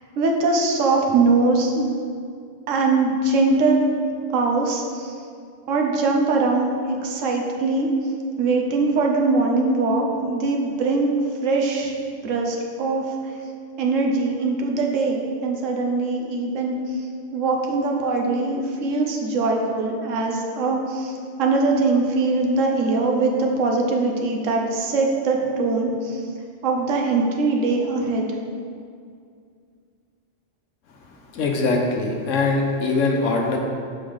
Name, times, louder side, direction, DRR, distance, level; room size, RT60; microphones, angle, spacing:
voice 1, 0.2-1.9 2.7-3.8 4.3-5.1 5.7-7.9 8.4-11.2 11.4-11.9 12.2-13.1 13.8-16.8 17.3-26.2 26.6-28.3, right 3 dB, 85° right, 1 dB, 1.1 m, -22 dB
voice 2, 31.3-33.6, left 3 dB, 85° left, 1 dB, 1.2 m, -22 dB
6.0 x 4.5 x 5.0 m, 2.3 s
omnidirectional pair, 1.3 m